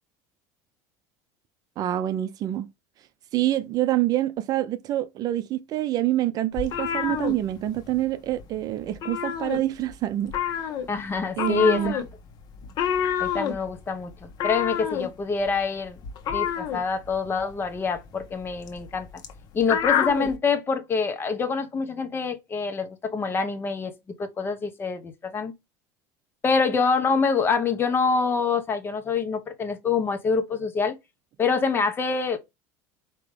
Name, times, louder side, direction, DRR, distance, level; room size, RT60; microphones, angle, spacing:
voice 1, 1.8-2.7 3.3-10.3 11.4-12.0, right 13 dB, 45° right, 0.5 m, -26 dB
sound 1, 6.5-8.1 8.3-8.6 8.8-9.9 10.3-20.4, left 8 dB, 50° left, 1.1 m, -28 dB
voice 2, 10.9-12.0 13.2-16.0 16.3-19.1 19.5-23.9 24.2-25.5 26.4-31.0 31.4-32.4, left 5 dB, 25° left, 1.0 m, -25 dB
4.9 x 2.9 x 3.3 m
supercardioid pair, 120°, 9 cm